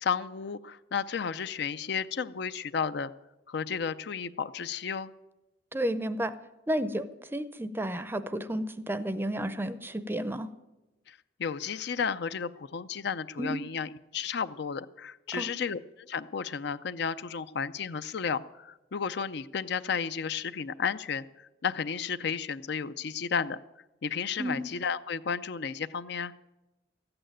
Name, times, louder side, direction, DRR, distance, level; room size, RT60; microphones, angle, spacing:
voice 1, 0.0-3.1 3.5-5.1 11.1-23.6 24.0-26.3, left 6 dB, 60° left, 13 dB, 0.5 m, -33 dB
voice 2, 5.7-6.3 6.7-10.5 13.4-13.6 15.3-15.5 24.4-24.6, right 1 dB, 10° right, 13 dB, 0.6 m, -32 dB
14.0 x 8.9 x 9.0 m, 1.0 s
head